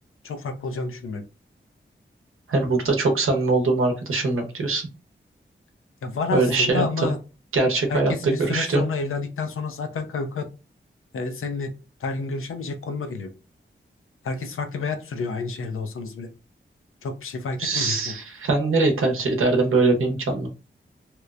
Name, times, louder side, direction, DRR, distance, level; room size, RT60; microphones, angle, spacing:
voice 1, 0.2-1.2 6.0-7.2 7.9-10.5 11.1-11.7 12.0-13.3 14.2-16.3 17.0-18.1, left 4 dB, 90° left, 8 dB, 0.5 m, -30 dB
voice 2, 2.5-4.8 6.3-7.1 7.5-8.8 17.6-20.5, right 3 dB, 85° right, 3 dB, 0.7 m, -22 dB
2.9 x 2.0 x 2.3 m, 0.31 s
cardioid pair, 45°, 21 cm